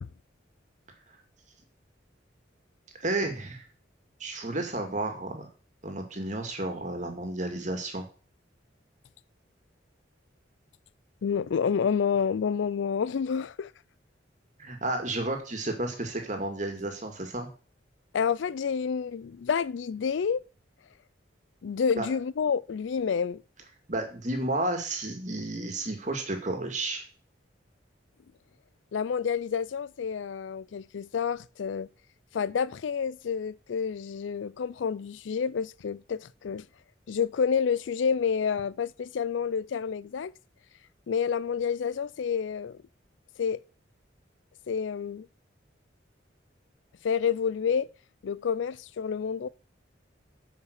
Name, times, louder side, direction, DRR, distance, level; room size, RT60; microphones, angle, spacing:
voice 1, 3.0-3.6 4.2-5.5 5.8-8.0 14.6-17.5 22.0-22.1 23.9-27.0, right 2 dB, 40° right, 2.2 m, -32 dB
voice 2, 11.2-13.7 18.1-20.4 21.6-23.4 28.9-31.9 32.3-36.7 37.1-40.3 41.1-42.8 43.4-43.6 44.7-45.3 47.0-47.9 48.2-49.5, left 6 dB, 80° left, 0.4 m, -29 dB
9.8 x 5.5 x 6.5 m
head